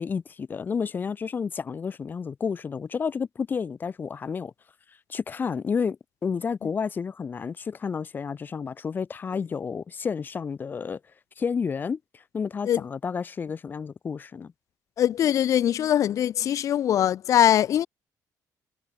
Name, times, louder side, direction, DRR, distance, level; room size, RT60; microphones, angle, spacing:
voice 1, 0.0-4.5 5.1-6.0 6.2-11.0 11.4-14.5, left 6 dB, 30° left, 5.6 m, -30 dB
voice 2, 15.0-17.9, left 11 dB, 50° left, 1.4 m, -22 dB
cardioid pair, 175°, 7 cm